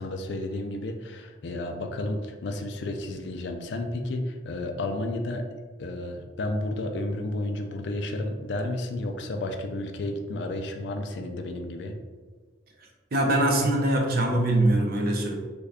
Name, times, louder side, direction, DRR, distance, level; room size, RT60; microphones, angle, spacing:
voice 1, 0.0-5.4 5.8-11.9, left 2 dB, 60° left, 5 dB, 0.4 m, -32 dB
voice 2, 13.1-15.4, right 1 dB, 50° right, 1 dB, 0.6 m, -23 dB
3.4 x 2.3 x 3.5 m, 1.4 s
head